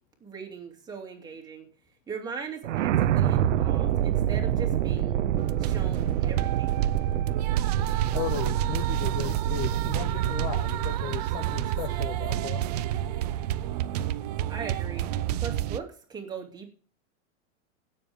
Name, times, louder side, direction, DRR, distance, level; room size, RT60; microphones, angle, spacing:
voice 1, 0.2-1.7 2.1-5.2 5.6-6.9 14.5-15.1 15.4-16.7, right 5 dB, 10° right, 2 dB, 2.7 m, -39 dB
sound 1, 2.6-13.7, right 11 dB, 70° right, 1.1 m, -27 dB
sound 2, 5.4-15.8, right 12 dB, 30° right, 0.5 m, -30 dB
voice 2, 8.0-12.9, left 11 dB, 25° left, 11 dB, 0.6 m, -36 dB
16.5 x 7.3 x 3.6 m, 0.38 s
supercardioid pair, 165°, 40 cm